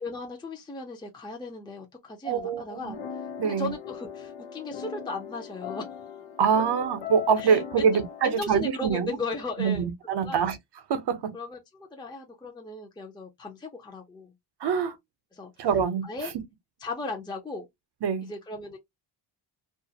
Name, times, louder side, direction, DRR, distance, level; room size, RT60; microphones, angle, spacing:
voice 1, 0.0-3.0 3.4-5.9 7.4-9.9 10.2-10.5 11.3-14.3 15.3-15.7 16.0-16.3 16.8-17.7 18.2-18.8, left 3 dB, 10° left, 0.6 m, -37 dB
voice 2, 2.2-2.9 3.4-3.7 6.4-9.2 9.6-10.6 10.9-11.3 14.6-14.9 15.6-16.1 18.0-18.3, right 6 dB, 55° right, 0.7 m, -25 dB
sound 1, 2.9-8.4, left 8 dB, 85° left, 0.7 m, -39 dB
2.4 x 2.4 x 2.7 m
cardioid pair, 85°, 48 cm